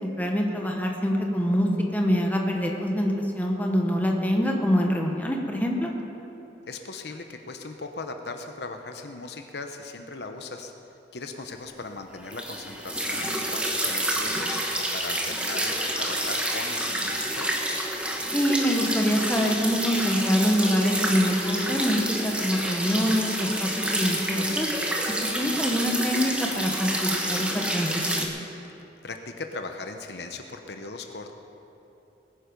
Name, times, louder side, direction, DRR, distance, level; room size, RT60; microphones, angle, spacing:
voice 1, 0.0-5.9 18.3-24.7 25.3-28.3, equal, 10° left, 1 dB, 1.3 m, -25 dB
voice 2, 6.7-10.7 11.1-17.5 29.0-31.3, left 3 dB, 65° left, 5 dB, 0.9 m, -38 dB
sound 1, 12.3-28.3, right 1 dB, 5° right, 1.2 m, -28 dB
20.5 x 9.6 x 5.3 m, 2.9 s
head